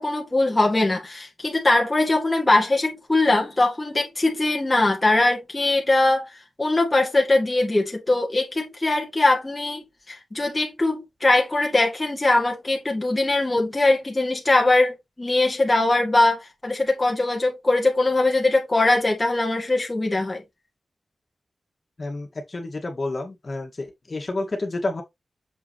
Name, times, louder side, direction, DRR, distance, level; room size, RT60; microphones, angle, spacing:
voice 1, 0.0-6.3 6.6-20.4, left 2 dB, 20° left, 1.9 m, -21 dB
voice 2, 22.0-25.0, left 2 dB, 45° left, 2.1 m, -30 dB
7.2 x 4.8 x 3.3 m
wide cardioid pair, 85°, 0 cm